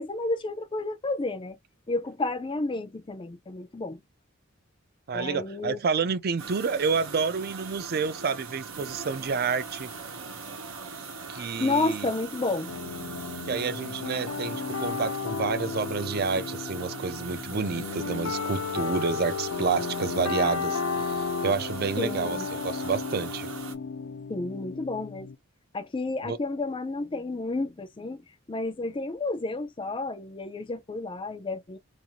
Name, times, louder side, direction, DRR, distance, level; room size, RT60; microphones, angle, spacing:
voice 1, 0.0-1.6 1.9-4.0 5.1-5.8 11.4-12.7 22.0-22.5 24.3-25.3 25.7-28.2 28.5-31.8, left 2 dB, 25° left, 0.4 m, -31 dB
voice 2, 5.1-9.9 11.3-12.1 13.5-23.5 26.2-26.4, right 5 dB, 45° right, 0.4 m, -29 dB
sound 1, 6.4-23.7, right 4 dB, 85° right, 0.9 m, -41 dB
sound 2, 12.7-25.4, left 5 dB, 80° left, 0.5 m, -33 dB
2.5 x 2.4 x 2.8 m
head